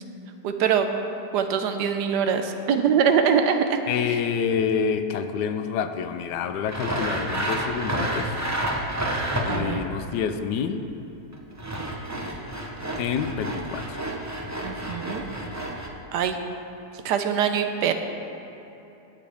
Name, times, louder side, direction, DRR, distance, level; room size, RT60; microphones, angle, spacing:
voice 1, 0.4-0.9 1.3-3.8 4.1-4.2 9.5-9.9 14.6-15.2 16.1-16.4 17.0-17.9, right 7 dB, 85° right, 7 dB, 1.3 m, -23 dB
voice 2, 3.9-8.3 9.4-10.8 13.0-14.0, left 7 dB, 85° left, 9 dB, 1.2 m, -27 dB
Sawing, 6.7-9.9 11.3-15.9, right 1 dB, 15° right, 0.6 m, -30 dB
19.5 x 6.7 x 3.5 m, 2.9 s
omnidirectional pair, 1.8 m